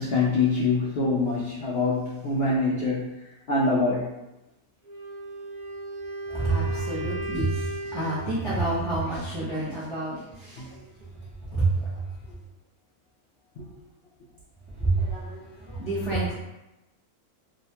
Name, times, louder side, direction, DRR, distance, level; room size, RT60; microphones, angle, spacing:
voice 1, 0.0-3.1 3.5-4.2 10.1-10.7 13.6-13.7, left 3 dB, 80° left, -4 dB, 0.5 m, -25 dB
Wind instrument woodwind instrument, 4.8-8.4, right 1 dB, 85° right, 1.1 m, -36 dB
voice 2, 6.3-10.8 11.5-12.0 12.3-12.4 14.8-16.3, right 2 dB, 45° right, -10 dB, 0.4 m, -28 dB
2.9 x 2.1 x 2.7 m, 0.94 s
omnidirectional pair, 1.6 m